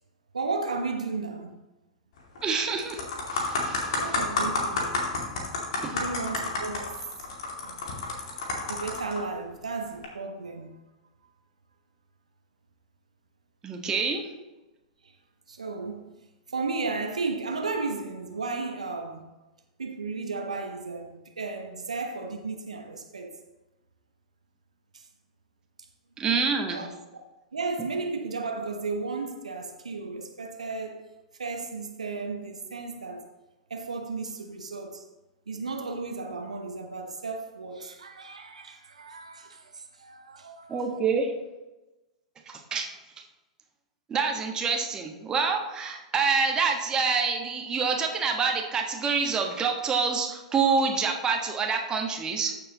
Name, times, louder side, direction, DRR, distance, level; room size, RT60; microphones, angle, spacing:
voice 1, 0.3-1.6 4.0-5.0 5.9-6.9 7.6-7.8 8.7-10.8 15.0-15.1 15.5-16.1 16.5-19.3 19.8-23.3 24.9-25.1 26.7-26.9 27.1-27.2 27.5-31.0 31.4-33.3 33.7-35.0 35.5-41.0, right 3 dB, 75° right, 1.0 m, -34 dB
sound 1, 2.2-2.4 2.8-9.2 9.9-10.1, left 3 dB, 55° left, 2.4 m, -30 dB
voice 2, 2.4-3.0 3.3-4.2 5.8-6.0 13.6-14.2 26.2-26.9 40.7-41.3 42.5-42.9 44.1-52.5, right 5 dB, 20° right, 1.4 m, -27 dB
14.0 x 6.9 x 3.0 m
figure-of-eight pair, 100°, 4 cm